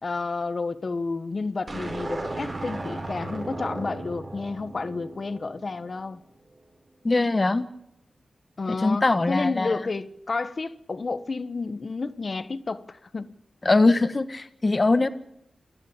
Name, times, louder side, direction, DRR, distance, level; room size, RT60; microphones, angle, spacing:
voice 1, 0.0-6.2 8.6-13.3, left 3 dB, 55° left, 1.3 m, -31 dB
sound 1, 1.7-6.1, right 2 dB, 45° right, 5.2 m, -35 dB
voice 2, 7.0-7.7 8.7-9.8 13.6-15.1, left 2 dB, 40° left, 1.6 m, -22 dB
28.5 x 11.0 x 8.8 m
wide cardioid pair, 70°, 0 cm